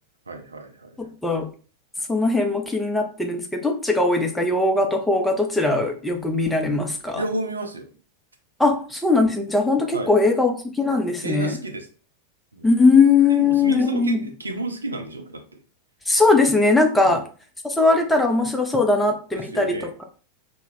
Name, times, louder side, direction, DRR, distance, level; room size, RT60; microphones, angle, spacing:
voice 1, 0.3-0.9 7.1-7.9 9.9-10.1 11.2-11.9 12.5-12.7 13.3-15.6 17.0-17.2 19.3-19.9, right 2 dB, 75° right, 4 dB, 0.5 m, -31 dB
voice 2, 1.0-1.5 2.1-7.2 8.6-11.6 12.6-14.2 16.1-17.2 17.6-20.0, left 3 dB, 5° left, 3 dB, 0.5 m, -20 dB
2.2 x 2.0 x 3.3 m, 0.38 s
figure-of-eight pair, 90°, 0 cm